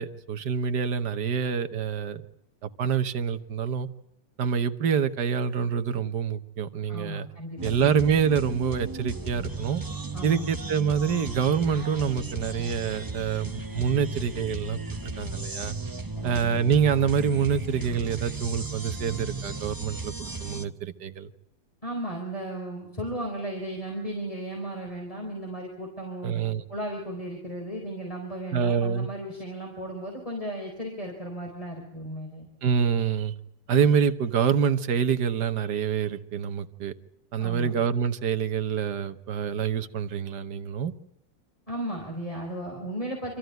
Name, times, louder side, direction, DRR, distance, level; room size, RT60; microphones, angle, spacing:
voice 1, 0.0-2.2 2.6-3.9 4.4-7.3 7.6-9.8 10.2-15.8 16.2-20.1 20.4-21.3 26.2-26.6 28.5-29.1 32.6-33.3 33.7-36.9 37.3-40.9, right 7 dB, 65° right, 10 dB, 1.7 m, -26 dB
voice 2, 6.9-7.9 10.1-10.4 16.1-16.6 21.8-26.3 26.7-32.5 37.4-37.7 41.7-43.4, right 1 dB, 20° left, 0 dB, 4.3 m, -35 dB
sound 1, 7.6-20.6, right 3 dB, 30° right, 0.4 m, -35 dB
26.0 x 14.5 x 9.2 m, 0.85 s
omnidirectional pair, 2.0 m